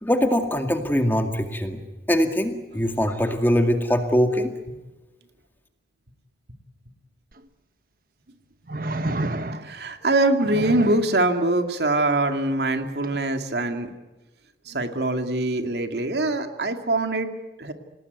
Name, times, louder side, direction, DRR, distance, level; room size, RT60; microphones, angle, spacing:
voice 1, 0.0-1.8 2.1-4.5, equal, 10° left, 5 dB, 2.1 m, -22 dB
sound 1, 7.3-7.4 8.7-9.9 10.4-11.1 13.0-13.2, right 2 dB, 55° right, 1.4 m, -29 dB
voice 2, 9.6-13.9 14.7-17.3 17.6-17.7, right 2 dB, 70° right, 6 dB, 2.3 m, -23 dB
27.5 x 18.5 x 9.4 m, 1.1 s
head